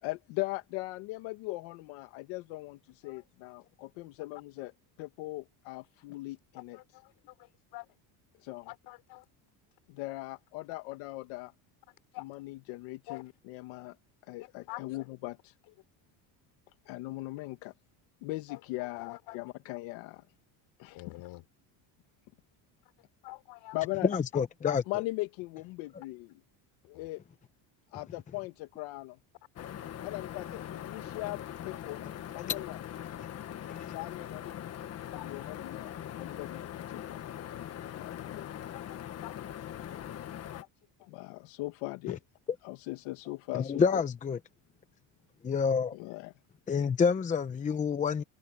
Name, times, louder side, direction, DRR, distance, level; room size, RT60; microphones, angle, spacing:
voice 1, 0.0-4.7 5.0-6.8 8.4-8.7 9.9-11.5 12.2-13.9 14.2-15.5 16.9-17.7 18.2-20.2 20.8-21.2 23.7-24.1 24.9-26.4 26.9-27.2 27.9-29.2 30.0-32.8 33.8-34.6 35.1-37.2 37.9-38.6 41.1-42.2 42.6-44.0 45.9-46.3, left 21 dB, 85° left, 1.7 m, -39 dB
voice 2, 6.7-7.9 8.7-9.2 12.1-12.2 13.1-13.2 14.4-14.8 18.5-19.4 20.9-21.4 23.2-23.8 24.3-24.8 26.9-27.1 34.8-35.3 38.3-38.9 39.2-39.4 39.8-40.0 40.5-40.7 41.0-41.1, left 20 dB, 65° left, 6.1 m, -47 dB
voice 3, 24.0-24.8 33.8-33.9 43.5-44.4 45.4-46.0 46.7-48.2, left 6 dB, 15° left, 0.8 m, -28 dB
sound 1, 29.6-40.6, left 10 dB, 35° left, 1.3 m, -41 dB
cardioid pair, 165°, 44 cm